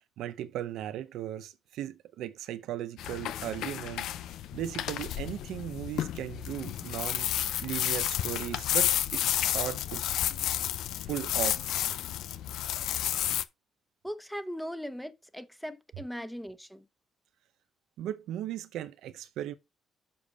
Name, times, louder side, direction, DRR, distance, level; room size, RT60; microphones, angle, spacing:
voice 1, 0.2-4.1 4.5-7.3 7.6-10.0 11.1-11.7 18.0-19.5, right 12 dB, 85° right, 0.6 m, -37 dB
sound 1, 3.0-13.4, left 12 dB, 85° left, 0.5 m, -31 dB
voice 2, 14.0-16.8, equal, ahead, 1.0 m, -39 dB
7.0 x 5.1 x 5.3 m
cardioid pair, 90°, 0 cm